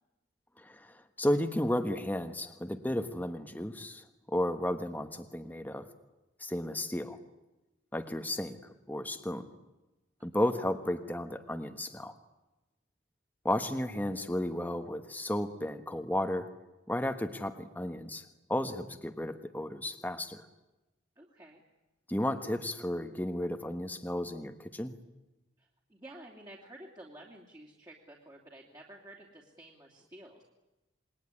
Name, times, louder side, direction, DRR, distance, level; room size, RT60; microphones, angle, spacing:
voice 1, 0.6-5.9 6.4-7.2 7.9-9.5 10.2-12.1 13.4-16.5 16.9-20.4 22.1-24.9, left 1 dB, 10° left, 7 dB, 1.3 m, -33 dB
voice 2, 21.2-21.6 25.6-30.4, right 1 dB, 20° right, -1 dB, 2.9 m, -52 dB
27.5 x 22.0 x 9.8 m, 1.0 s
head